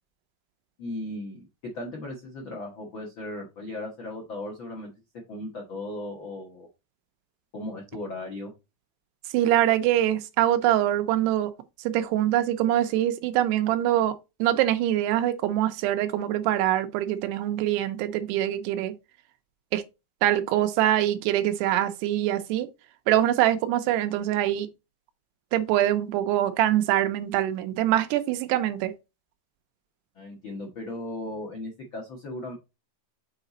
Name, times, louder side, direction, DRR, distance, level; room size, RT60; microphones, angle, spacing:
voice 1, 0.8-4.9 5.3-6.7 7.5-8.5 30.1-32.5, left 1 dB, 85° left, 1.1 m, -36 dB
voice 2, 9.3-11.5 11.8-18.9 19.7-19.8 20.2-22.7 23.1-24.7 25.5-28.9, right 12 dB, 85° right, 2.9 m, -24 dB
6.7 x 4.0 x 4.0 m
omnidirectional pair, 4.7 m